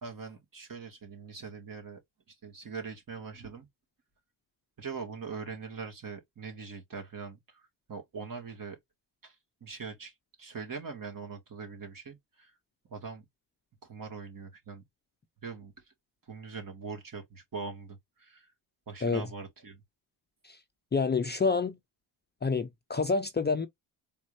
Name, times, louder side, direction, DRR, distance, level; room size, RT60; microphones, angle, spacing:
voice 1, 0.0-2.0 2.4-3.7 4.8-7.6 7.9-8.8 9.2-9.3 9.6-10.1 10.4-12.5 12.9-13.2 13.8-14.8 15.4-15.7 16.3-18.5 18.9-19.8, right 5 dB, 45° right, 2.3 m, -42 dB
voice 2, 20.9-21.7 22.4-23.7, left 4 dB, 20° left, 0.7 m, -28 dB
4.3 x 3.7 x 2.7 m
cardioid pair, 85°, 46 cm